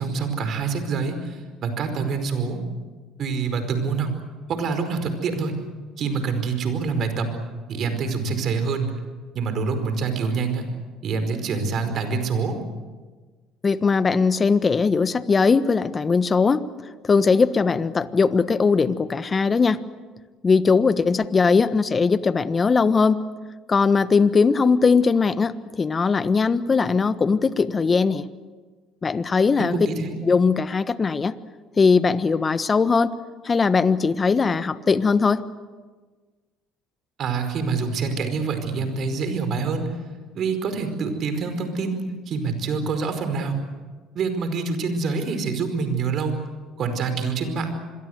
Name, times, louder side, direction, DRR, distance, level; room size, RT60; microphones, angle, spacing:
voice 1, 0.0-2.6 3.2-4.1 4.5-5.5 6.0-7.3 7.7-8.9 9.3-10.7 11.0-12.6 29.6-30.2 37.2-39.9 40.3-43.6 44.1-46.4 46.8-47.7, right 4 dB, 55° right, 8 dB, 5.0 m, -26 dB
voice 2, 13.6-16.6 17.0-19.8 20.4-23.2 23.7-28.3 29.0-29.7 30.2-31.3 31.8-33.1 33.4-35.4, left 5 dB, 30° left, 14 dB, 1.3 m, -20 dB
26.5 x 22.0 x 8.1 m, 1.4 s
hypercardioid pair, 65°, 0 cm